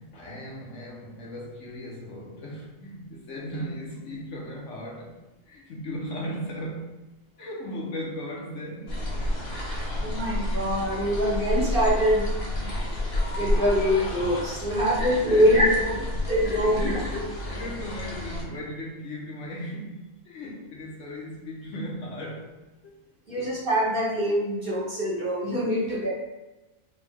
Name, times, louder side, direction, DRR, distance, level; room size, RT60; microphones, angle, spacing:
voice 1, 0.0-5.2 5.5-6.9 7.4-9.0 14.7-22.6 22.8-22.9 23.3-23.5 25.7-26.0, left 1 dB, 65° left, -3 dB, 1.4 m, -37 dB
sound 1, 8.9-18.4, left 1 dB, 30° left, 0.9 m, -30 dB
voice 2, 10.0-12.3 12.7-12.8 13.4-15.9 16.3-17.0 23.3-26.1, equal, 45° right, -6 dB, 1.4 m, -24 dB
5.4 x 2.4 x 3.7 m, 1.1 s
omnidirectional pair, 1.4 m